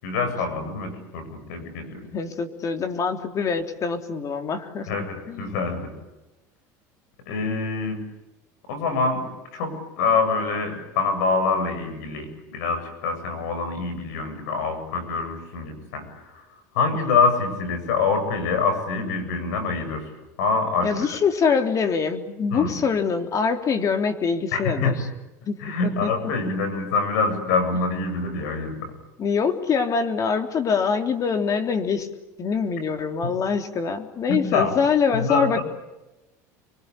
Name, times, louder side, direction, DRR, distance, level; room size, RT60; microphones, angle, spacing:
voice 1, 0.0-2.1 4.9-5.9 7.3-8.0 8.7-16.4 16.7-20.1 20.4-21.1 22.5-22.7 24.5-25.0 25.6-29.0 34.3-34.7 35.1-35.6, left 4 dB, 80° left, 9 dB, 7.9 m, -25 dB
voice 2, 2.1-5.6 16.9-17.0 20.8-25.0 25.5-26.1 29.2-32.1 32.4-35.6, left 5 dB, 40° left, 6 dB, 3.4 m, -24 dB
27.0 x 24.0 x 8.5 m, 0.99 s
supercardioid pair, 100°, 9 cm